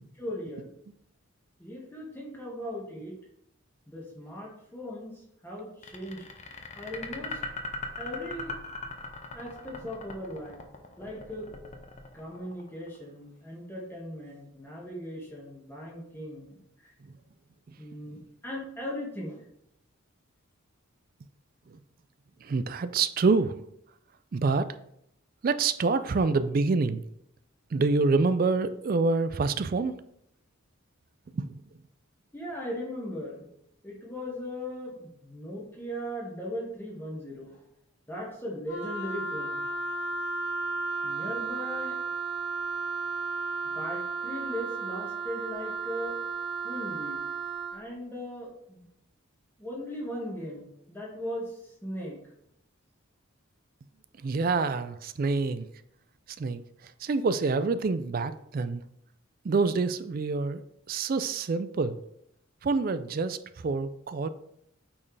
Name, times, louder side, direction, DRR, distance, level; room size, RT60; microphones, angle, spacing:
voice 1, 0.2-0.7 1.6-3.2 3.9-5.1 5.4-6.3 6.7-7.4 8.0-8.5 9.3-10.6 11.0-11.5 12.1-16.9 17.8-19.4 32.3-33.5 33.8-37.6 38.1-39.6 41.0-42.0 43.6-46.2 46.6-47.2 47.7-48.9 49.6-52.2, equal, 10° left, -4 dB, 1.5 m, -38 dB
sound 1, 5.8-13.0, left 3 dB, 30° left, 0.7 m, -39 dB
voice 2, 22.4-23.6 24.3-24.7 25.4-27.0 27.7-30.0 31.3-31.5 54.2-55.7 56.4-56.6 57.0-58.8 59.4-62.0 62.6-63.4 63.6-64.3, right 4 dB, 40° right, 13 dB, 0.3 m, -26 dB
Wind instrument woodwind instrument, 38.7-47.8, right 4 dB, 85° left, 1.4 m, -33 dB
8.6 x 4.4 x 3.3 m, 0.75 s
head